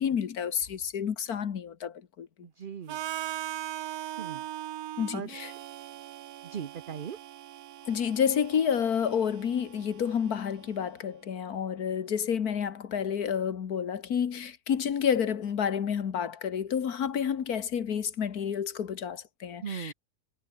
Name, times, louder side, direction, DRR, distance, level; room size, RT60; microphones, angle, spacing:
voice 1, 0.0-2.3 5.0-5.5 7.9-19.9, left 8 dB, 75° left, 1.8 m, -29 dB
voice 2, 2.4-3.0 4.2-4.4 5.1-5.3 6.4-7.2 19.6-19.9, right 8 dB, 45° right, 0.8 m, -38 dB
Harmonica, 2.9-10.8, right 12 dB, 75° right, 1.2 m, -40 dB
omnidirectional pair, 1.6 m